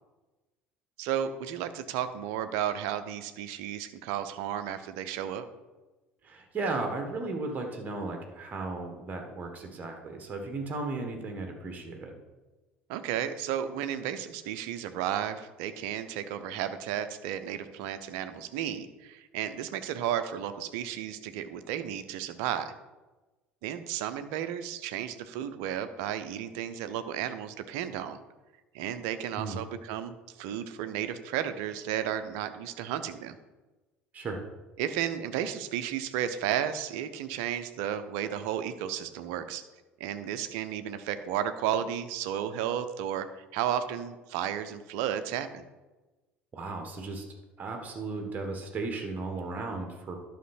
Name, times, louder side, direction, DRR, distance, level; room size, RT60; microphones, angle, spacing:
voice 1, 1.0-5.4 12.9-22.7 23.6-28.2 28.7-33.4 34.8-39.6 40.0-45.6, right 10 dB, 55° right, 10 dB, 0.6 m, -33 dB
voice 2, 6.2-12.1 29.4-29.6 34.1-34.4 46.5-47.2 47.6-50.2, right 3 dB, 25° right, 4 dB, 1.5 m, -35 dB
11.0 x 5.9 x 4.3 m, 1.2 s
figure-of-eight pair, 65°, 6 cm